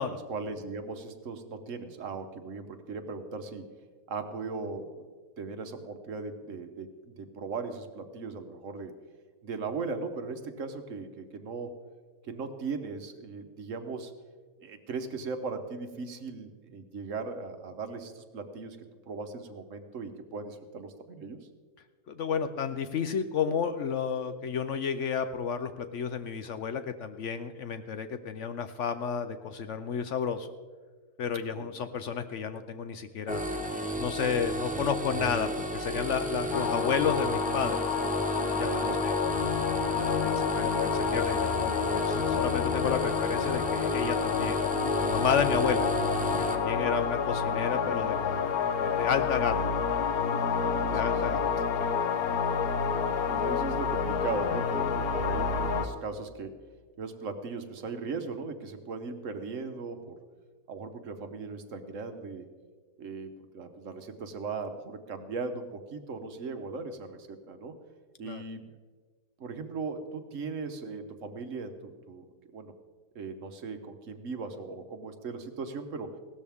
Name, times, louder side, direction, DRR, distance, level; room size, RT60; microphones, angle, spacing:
voice 1, 0.0-3.7 4.1-5.0 5.4-8.9 9.4-11.7 12.2-14.1 14.6-18.8 19.1-21.4 31.6-31.7 38.8-39.0 47.8-48.1 50.7-51.0 52.9-56.6 57.0-60.2 60.7-62.5 63.0-67.7 68.2-68.7 69.4-72.2 72.5-72.7 73.1-76.1, right 4 dB, 60° right, 8 dB, 1.3 m, -38 dB
voice 2, 22.1-30.5 31.2-33.5 34.0-37.8 38.6-39.1 39.9-44.6 45.0-45.9 46.5-48.5 48.8-49.7 50.9-51.5 51.8-51.9 68.2-68.4, left 7 dB, 65° left, 10 dB, 0.9 m, -31 dB
sound 1, 33.3-46.5, right 1 dB, 10° right, 0.6 m, -32 dB
sound 2, 36.5-55.9, left 6 dB, 85° left, 1.4 m, -29 dB
17.0 x 13.0 x 3.5 m, 1.5 s
omnidirectional pair, 1.6 m